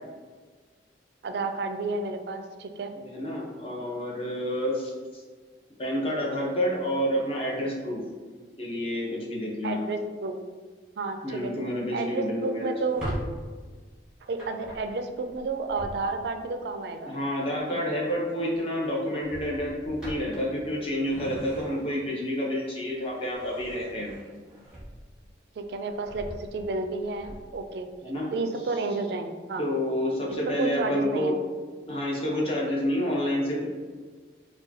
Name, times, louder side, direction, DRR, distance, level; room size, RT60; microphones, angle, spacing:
voice 1, 1.2-3.0 9.6-10.4 11.0-11.5 11.9-13.1 14.3-17.2 25.6-27.9 28.3-29.6 30.6-31.3, right 3 dB, 65° right, 6 dB, 0.3 m, -31 dB
voice 2, 3.0-4.9 5.8-8.0 8.6-9.8 11.2-12.7 17.1-24.1 28.0-28.3 29.6-31.4 31.9-33.7, equal, 30° left, -4 dB, 0.8 m, -29 dB
Drawer open or close, 12.8-16.4 17.9-18.2 18.5-18.7 19.2-22.1 22.6-25.3 25.7-27.6, right 1 dB, 5° right, 1.1 m, -41 dB
4.6 x 2.3 x 2.7 m, 1.5 s
head